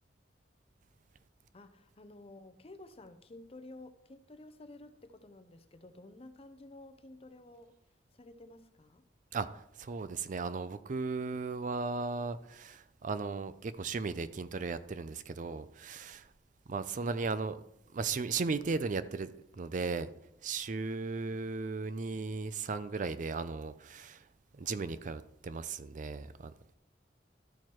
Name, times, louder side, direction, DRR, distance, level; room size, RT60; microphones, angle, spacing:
voice 1, 1.5-7.8 8.1-9.0 21.2-21.4, left 2 dB, 35° left, 0.7 m, -52 dB
voice 2, 9.3-16.3 16.7-17.6 17.9-20.1 20.4-24.2 24.6-26.5, right 4 dB, 45° right, 0.4 m, -36 dB
12.5 x 4.5 x 4.5 m
head